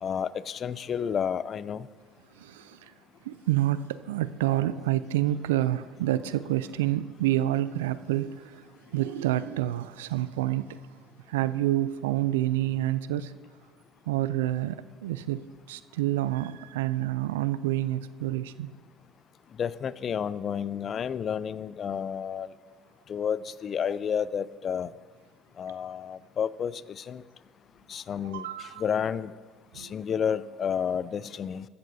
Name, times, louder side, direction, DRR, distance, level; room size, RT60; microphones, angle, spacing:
voice 1, 0.0-1.9 19.6-22.5 23.1-24.9 25.6-27.2 27.9-28.5 28.8-29.3 29.8-31.7, left 7 dB, 45° left, 18 dB, 0.4 m, -30 dB
voice 2, 2.3-2.9 3.2-10.8 11.3-13.3 14.1-18.7 28.2-28.8 29.7-29.9, right 14 dB, 85° right, 15 dB, 0.4 m, -28 dB
14.0 x 13.5 x 2.7 m, 1.5 s
hypercardioid pair, 70°, 0 cm